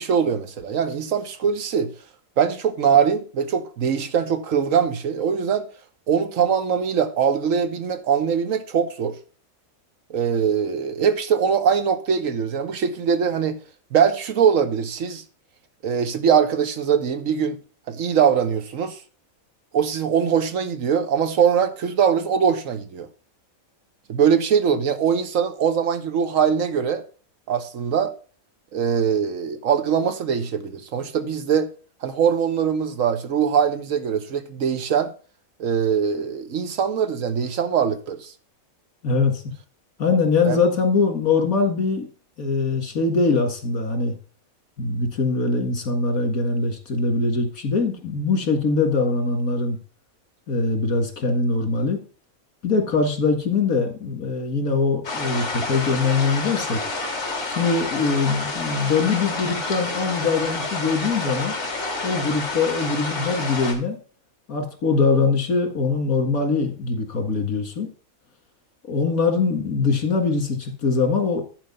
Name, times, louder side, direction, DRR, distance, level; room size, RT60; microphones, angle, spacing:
voice 1, 0.0-1.9 2.4-5.6 6.1-9.1 10.1-13.6 13.9-15.2 15.8-17.6 17.9-19.0 19.7-23.1 24.1-27.0 27.5-28.1 28.7-31.7 32.0-35.1 35.6-38.3 40.4-40.6, right 7 dB, 70° right, 1.3 m, -22 dB
voice 2, 39.0-39.4 40.0-42.1 42.4-44.1 44.8-49.8 50.5-52.0 52.6-56.8 57.5-61.5 62.0-64.0 64.5-67.9 68.9-71.4, left 4 dB, 80° left, 2.3 m, -22 dB
sound 1, 55.0-63.7, left 3 dB, 55° left, 2.3 m, -29 dB
10.5 x 4.6 x 5.4 m
omnidirectional pair, 1.5 m